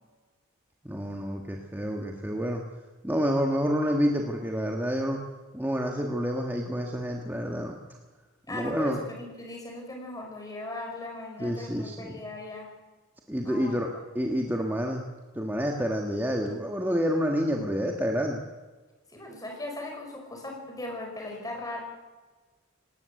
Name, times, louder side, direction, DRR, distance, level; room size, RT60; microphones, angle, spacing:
voice 1, 0.8-2.6 3.0-5.2 5.5-7.8 8.5-9.0 11.4-12.2 13.3-13.9 14.1-15.0 15.3-18.4, equal, 10° right, 1 dB, 1.6 m, -28 dB
voice 2, 8.5-12.7 13.4-13.8 19.1-21.8, left 2 dB, 15° left, 1 dB, 5.2 m, -38 dB
19.0 x 18.5 x 8.3 m, 1.3 s
head